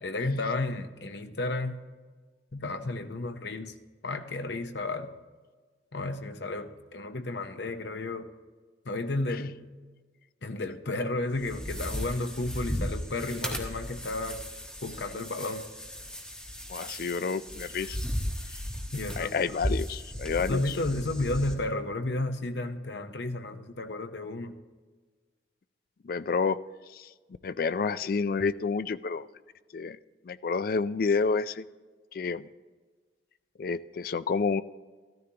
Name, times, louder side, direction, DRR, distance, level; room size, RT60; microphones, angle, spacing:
voice 1, 0.0-1.8 2.5-3.7 4.0-5.1 5.9-8.3 8.9-9.6 10.4-14.4 14.8-15.6 18.9-19.6 20.4-24.5, left 2 dB, 75° left, 7 dB, 0.9 m, -32 dB
sound 1, 11.3-21.5, equal, 5° left, 1.3 m, -36 dB
voice 2, 16.7-18.0 19.2-20.6 26.0-26.6 26.9-27.1 27.4-29.3 29.7-30.0 30.3-31.6 32.1-32.5 33.6-34.6, left 5 dB, 55° left, 15 dB, 0.3 m, -29 dB
13.5 x 13.5 x 2.9 m, 1.4 s
head